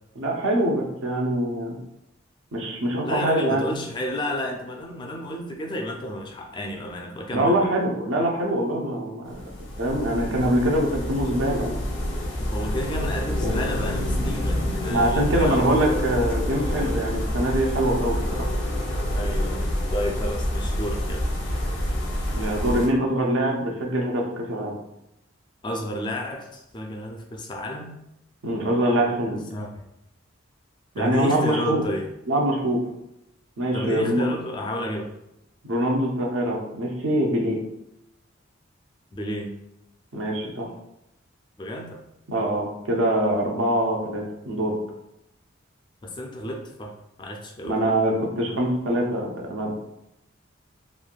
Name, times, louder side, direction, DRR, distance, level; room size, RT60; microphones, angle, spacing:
voice 1, 0.2-1.8 2.5-3.6 7.3-9.5 9.8-11.8 14.9-18.5 22.3-24.7 28.4-29.4 30.9-31.8 32.3-32.8 33.6-34.2 35.6-37.6 40.1-40.7 42.3-44.7 47.6-49.7, right 1 dB, 75° right, -1 dB, 0.7 m, -24 dB
voice 2, 3.0-7.7 12.4-15.6 19.1-21.2 25.6-27.9 29.3-29.9 31.0-32.1 33.7-35.1 39.1-39.5 41.6-42.0 46.0-46.9 47.2-47.8, equal, 25° left, 2 dB, 0.3 m, -31 dB
sound 1, 9.3-22.9, left 1 dB, 70° left, 0.7 m, -27 dB
3.1 x 2.5 x 2.3 m, 0.85 s
head